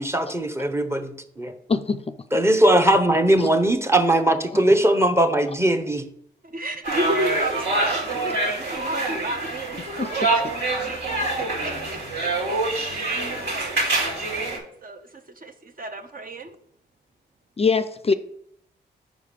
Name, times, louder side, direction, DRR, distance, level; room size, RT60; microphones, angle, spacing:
voice 1, 0.0-1.5 2.3-6.1, right 1 dB, 15° right, 7 dB, 0.9 m, -20 dB
voice 2, 1.7-2.1 3.4-3.5 10.0-10.1 17.6-18.1, left 4 dB, 35° left, 12 dB, 0.4 m, -22 dB
voice 3, 6.5-11.7 12.2-15.1 15.4-16.6, right 1 dB, 50° right, 7 dB, 0.8 m, -33 dB
sound 1, 6.8-14.6, right 2 dB, 65° right, 2.3 m, -26 dB
5.0 x 4.8 x 5.2 m, 0.69 s
cardioid pair, 50°, 19 cm